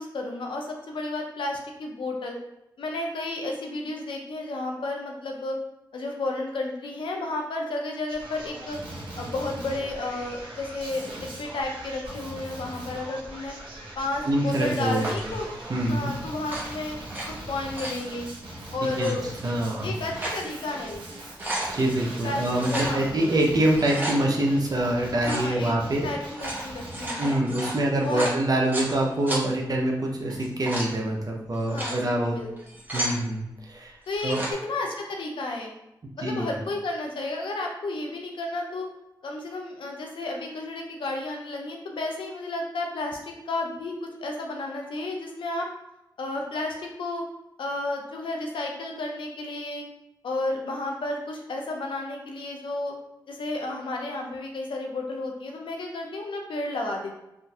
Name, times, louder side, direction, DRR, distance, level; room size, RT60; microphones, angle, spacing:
voice 1, 0.0-2.4 2.8-5.6 5.9-8.8 9.2-13.5 14.0-15.5 15.8-17.0 17.3-18.3 18.7-19.2 19.8-21.0 22.2-23.1 25.2-27.4 28.0-28.3 31.7-32.0 32.3-32.5 34.1-34.3 34.6-35.7 36.2-38.9 39.2-45.7 46.2-47.2 47.6-49.8 50.2-52.9 53.3-57.2, left 2 dB, 80° left, 1 dB, 0.5 m, -32 dB
Male speech man speaking, 8.1-27.1, right 1 dB, 80° right, 0.8 m, -40 dB
voice 2, 14.2-15.1 15.7-16.1 19.0-19.1 19.4-19.9 21.7-26.1 27.2-32.4 32.9-34.0 34.2-34.5 36.2-36.6, right 1 dB, 50° right, -1 dB, 0.7 m, -25 dB
sound 1, 15.0-15.4 16.4-17.3 17.6-18.0 18.9-19.1 19.8-20.4 20.9-21.0 21.2-21.7 22.6-23.0 23.6-24.2 25.2-25.5 26.2-28.9 29.3-29.4 30.3-30.9 31.5-32.0 32.6-33.2 34.1-34.5, right 1 dB, 20° right, 1.1 m, -32 dB
3.7 x 2.6 x 2.3 m, 0.90 s
cardioid pair, 50°, 8 cm